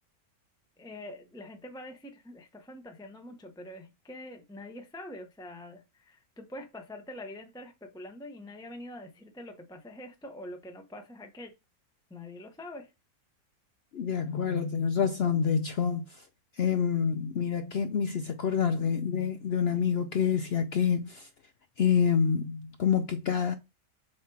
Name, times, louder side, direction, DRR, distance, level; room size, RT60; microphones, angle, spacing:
voice 1, 0.8-11.5 12.1-12.9, left 1 dB, 5° left, 0.7 m, -45 dB
voice 2, 13.9-16.0 16.6-21.3 21.8-23.6, left 7 dB, 70° left, 0.6 m, -27 dB
7.5 x 2.9 x 4.7 m
omnidirectional pair, 1.6 m